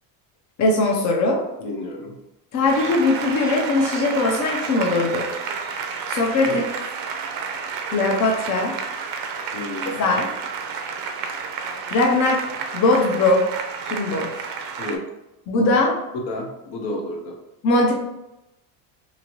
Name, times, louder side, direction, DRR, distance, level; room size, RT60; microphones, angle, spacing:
voice 1, 0.6-1.4 2.5-5.3 6.1-6.6 7.9-8.7 9.9-10.3 11.9-12.4 12.7-13.5 13.8-14.5 15.5-16.0 17.6-17.9, left 2 dB, 40° left, 0 dB, 0.6 m, -20 dB
voice 2, 1.6-2.1 6.4-6.6 9.5-10.2 14.8-15.0 16.3-17.4, left 2 dB, 65° left, 2 dB, 0.8 m, -31 dB
Applause, 2.7-15.0, right 5 dB, 50° right, 0.5 m, -31 dB
2.8 x 2.5 x 2.9 m, 0.91 s
cardioid pair, 120°, 45 cm